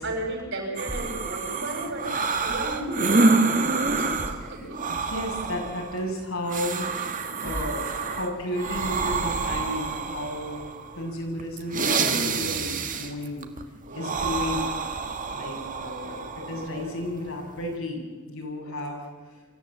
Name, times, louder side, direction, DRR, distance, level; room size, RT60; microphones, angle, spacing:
voice 1, 0.0-4.8 13.8-14.2 18.6-18.8, right 1 dB, 65° right, 1 dB, 7.1 m, -34 dB
sound 1, 0.8-17.8, right 4 dB, 40° right, 1.7 m, -28 dB
voice 2, 4.9-10.6 10.9-13.4 13.9-14.7 15.3-19.0, left 1 dB, 80° left, 0 dB, 7.1 m, -33 dB
24.5 x 14.0 x 8.7 m, 1.4 s
head